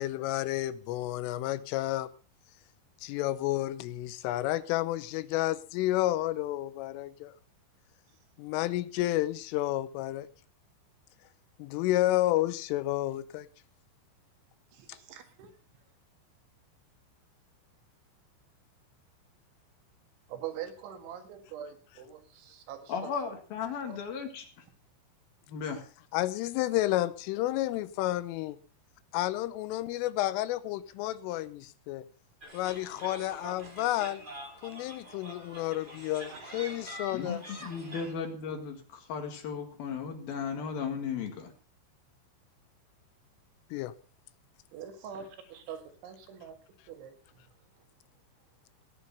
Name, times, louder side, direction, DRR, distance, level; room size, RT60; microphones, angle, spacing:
voice 1, 0.0-2.1 3.0-7.3 8.4-10.3 11.6-13.5 26.1-28.6 29.1-32.0 32.5-34.2 34.6-37.4 43.7-43.9, left 15 dB, 85° left, 3.4 m, -31 dB
voice 2, 15.1-15.5 20.3-23.1 36.3-36.4 37.2-37.4 44.7-46.6 46.9-47.2, right 9 dB, 70° right, 4.1 m, -43 dB
voice 3, 22.9-24.5 25.5-25.8 37.1-41.5, left 6 dB, 60° left, 3.2 m, -36 dB
sound 1, 32.4-38.1, right 1 dB, 15° right, 1.9 m, -45 dB
17.0 x 9.5 x 5.7 m
omnidirectional pair, 5.6 m